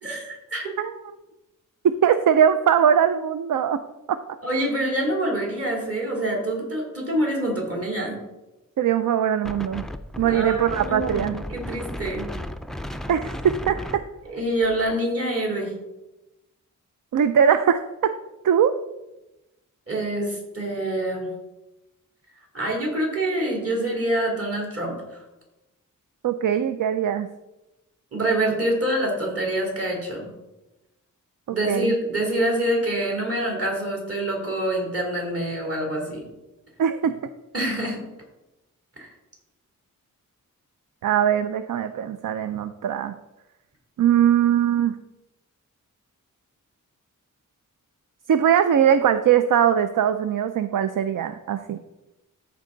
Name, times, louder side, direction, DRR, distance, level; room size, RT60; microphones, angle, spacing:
voice 1, 0.0-0.7 4.4-8.2 10.2-12.3 14.3-15.7 19.9-21.3 22.5-25.2 28.1-30.3 31.5-36.2 37.5-38.0 39.0-39.1, right 1 dB, 45° right, -1 dB, 3.0 m, -26 dB
voice 2, 2.0-3.8 4.1-4.2 8.8-9.8 10.2-11.4 13.1-13.8 17.1-17.8 18.4-18.7 26.2-27.3 31.5-31.9 36.8-37.1 41.0-43.1 44.0-44.9 48.3-51.8, right 9 dB, 70° right, 10 dB, 0.5 m, -21 dB
Wind, 9.4-14.9, left 1 dB, ahead, 0.4 m, -35 dB
13.5 x 4.6 x 3.9 m, 0.99 s
wide cardioid pair, 120°, 33 cm